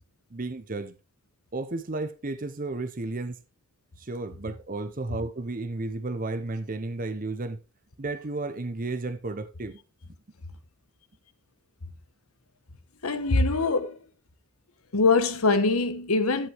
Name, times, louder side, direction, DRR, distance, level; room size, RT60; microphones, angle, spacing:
voice 1, 0.3-0.9 1.5-3.4 4.0-7.6 8.0-9.8, right 2 dB, 40° right, 0.8 m, -33 dB
voice 2, 13.0-14.0 14.9-16.5, left 3 dB, 85° left, 1.2 m, -23 dB
13.5 x 5.6 x 3.4 m
head